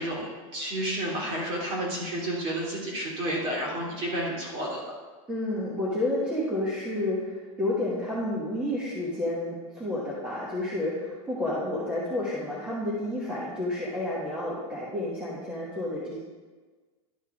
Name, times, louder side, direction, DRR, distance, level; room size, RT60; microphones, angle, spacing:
voice 1, 0.0-4.9, right 1 dB, 30° right, -3 dB, 2.3 m, -31 dB
voice 2, 5.3-16.2, left 1 dB, 5° right, -7 dB, 1.2 m, -30 dB
12.0 x 5.7 x 3.5 m, 1.4 s
supercardioid pair, 165°, 18 cm